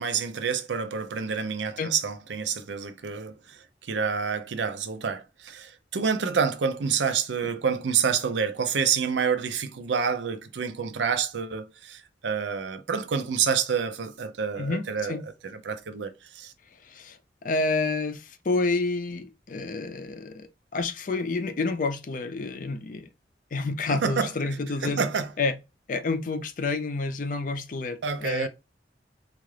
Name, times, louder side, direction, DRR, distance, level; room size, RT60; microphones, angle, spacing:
voice 1, 0.0-15.1 15.5-16.5 23.9-24.3 24.8-25.3 28.0-28.5, right 6 dB, 90° right, 0.5 m, -28 dB
voice 2, 14.6-15.2 16.8-23.1 23.5-25.1 25.4-25.6 25.9-28.5, left 3 dB, 50° left, 0.4 m, -29 dB
3.7 x 2.4 x 3.2 m
head